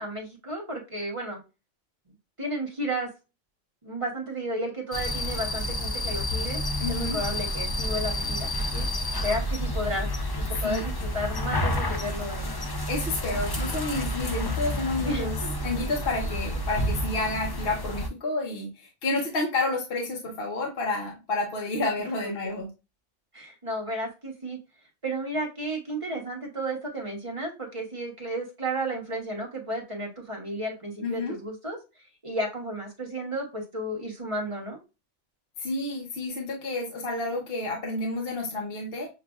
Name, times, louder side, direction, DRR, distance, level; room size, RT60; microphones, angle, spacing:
voice 1, 0.0-1.4 2.4-3.1 3.8-6.6 6.9-8.9 9.2-10.1 10.4-12.5 15.0-15.5 23.3-24.6 25.0-31.8 32.2-34.8, right 1 dB, 30° right, 0 dB, 1.0 m, -33 dB
sound 1, 4.9-18.1, left 1 dB, 35° left, 0.4 m, -30 dB
voice 2, 6.8-7.2 10.6-10.8 12.9-15.3 15.6-22.7 31.0-31.4 35.6-39.1, left 2 dB, 55° left, 0 dB, 1.1 m, -30 dB
6.8 x 2.4 x 2.4 m, 0.28 s
omnidirectional pair, 1.2 m